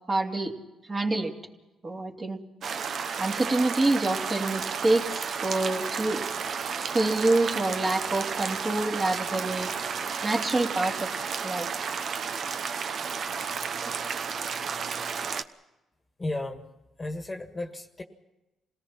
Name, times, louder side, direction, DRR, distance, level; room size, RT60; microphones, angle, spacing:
voice 1, 0.1-0.5 0.9-1.3 1.8-2.4 3.2-5.2 5.4-6.3 6.8-9.7 10.2-11.1 11.4-11.7, right 2 dB, 30° right, 1 dB, 2.9 m, -26 dB
sound 1, 2.6-15.4, right 6 dB, 55° right, 1.0 m, -32 dB
voice 2, 16.2-16.7 17.0-18.0, left 2 dB, 20° left, 5 dB, 1.7 m, -34 dB
27.5 x 18.0 x 5.8 m, 1.0 s
cardioid pair, 90°, 0 cm